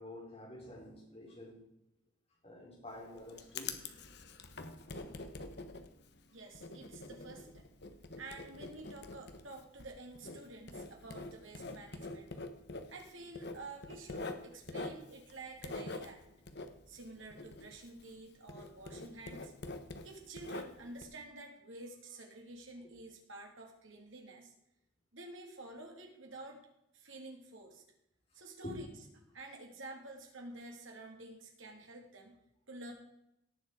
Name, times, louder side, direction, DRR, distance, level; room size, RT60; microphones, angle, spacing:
voice 1, 0.0-1.7 2.4-3.8 22.8-22.9 28.6-28.8, left 1 dB, 30° left, -2 dB, 4.7 m, -47 dB
Writing, 2.9-18.2 18.5-21.0, left 3 dB, 55° left, 1.2 m, -45 dB
voice 2, 6.3-7.7 8.2-12.3 12.8-16.2 16.9-19.5 20.0-24.5 25.1-26.7 26.9-27.8 28.3-28.9 29.3-32.4 32.7-32.9, right 2 dB, 75° right, 2 dB, 3.0 m, -50 dB
18.0 x 7.2 x 4.9 m, 0.82 s
head